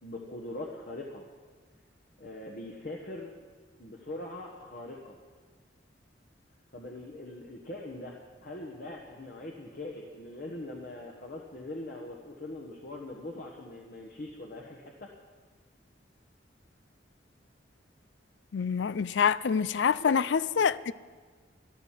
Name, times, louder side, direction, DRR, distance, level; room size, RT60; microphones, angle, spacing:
voice 1, 0.0-1.2 2.2-3.4 3.8-5.2 6.7-15.1 20.0-20.2, left 2 dB, 50° left, 1.3 m, -42 dB
voice 2, 18.5-20.9, left 6 dB, 70° left, 0.4 m, -26 dB
13.0 x 13.0 x 7.5 m
head